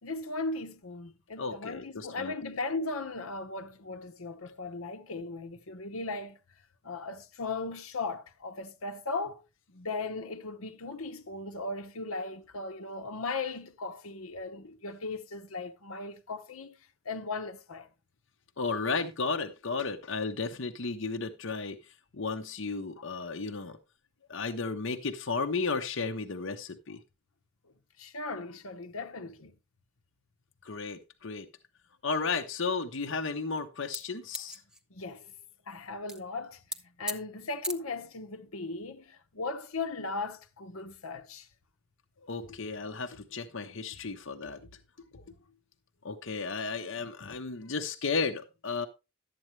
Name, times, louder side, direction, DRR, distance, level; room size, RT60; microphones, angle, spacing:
voice 1, 0.0-6.4 6.8-9.4 9.7-16.8 17.0-17.9 28.0-29.5 34.9-35.3 35.7-36.6 37.0-41.5 47.2-47.4, left 3 dB, 85° left, 1.0 m, -37 dB
voice 2, 1.4-2.3 18.6-21.8 22.1-23.8 24.3-27.0 30.6-31.5 32.0-34.6 42.2-44.6 45.0-45.2 46.0-48.9, left 4 dB, 60° left, 0.9 m, -34 dB
sound 1, 33.9-35.3 36.1-36.2 36.5-36.8 37.1-37.2 37.6-37.7, right 1 dB, 5° right, 0.6 m, -35 dB
12.0 x 8.5 x 3.2 m
head